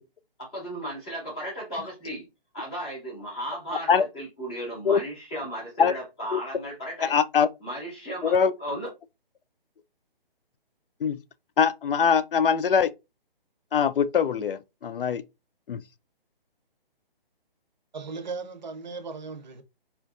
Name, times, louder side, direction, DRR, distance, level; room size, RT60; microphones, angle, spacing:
voice 1, 0.4-2.2 2.5-7.1 7.6-8.3 8.6-8.9, right 1 dB, 5° left, 0.5 m, -35 dB
voice 2, 7.1-7.5 8.2-8.5 11.0-11.2 11.6-12.9 13.7-15.2 15.7-15.8, left 6 dB, 65° left, 0.4 m, -22 dB
voice 3, 17.9-19.6, right 4 dB, 50° right, 0.6 m, -37 dB
4.3 x 2.5 x 2.4 m
hypercardioid pair, 165°, 29 cm